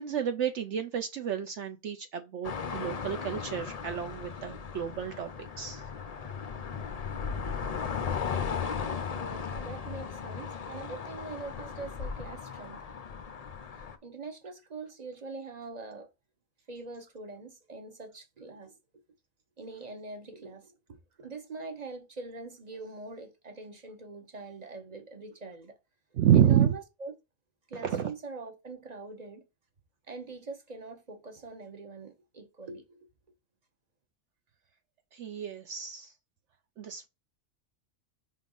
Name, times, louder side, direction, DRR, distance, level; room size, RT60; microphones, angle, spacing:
voice 1, 0.0-5.9 26.1-26.7 27.8-28.1 35.1-36.1 36.8-37.1, right 9 dB, 65° right, 0.9 m, -29 dB
sound 1, 2.4-14.0, left 6 dB, 45° left, 0.5 m, -36 dB
voice 2, 9.1-12.8 14.0-16.1 16.7-18.7 19.6-25.8 26.3-27.1 27.7-29.4 30.1-33.1, right 3 dB, 35° right, 1.0 m, -43 dB
5.2 x 3.8 x 5.4 m
omnidirectional pair, 1.4 m